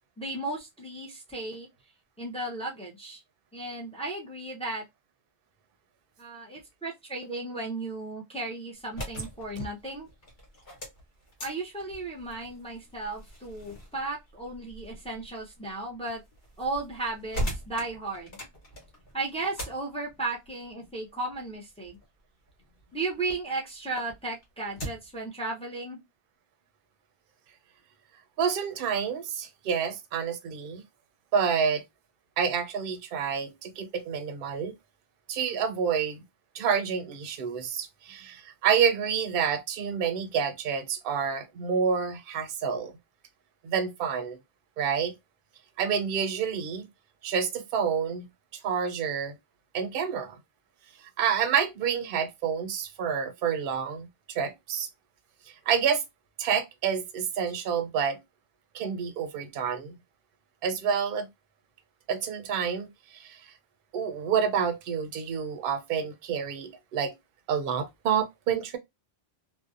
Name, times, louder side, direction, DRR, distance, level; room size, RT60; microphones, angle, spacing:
voice 1, 0.2-1.7 2.2-3.2 3.5-4.8 6.2-10.1 11.4-16.2 16.6-18.4 19.1-22.0 22.9-26.0, right 2 dB, 10° left, 0.4 m, -35 dB
sound 1, 8.8-23.4 23.8-25.2, equal, 60° left, 1.1 m, -41 dB
voice 2, 28.4-30.8 31.3-31.8 32.4-34.7 35.3-36.2 36.5-42.9 43.6-44.4 44.8-45.1 45.8-46.9 47.2-48.3 48.6-49.4 49.7-50.4 51.2-54.9 55.7-56.0 56.4-58.2 58.7-60.0 60.6-61.3 62.1-62.9 63.1-63.4 63.9-67.1 67.5-68.8, right 7 dB, 65° right, 0.7 m, -28 dB
2.6 x 2.0 x 2.3 m
omnidirectional pair, 1.1 m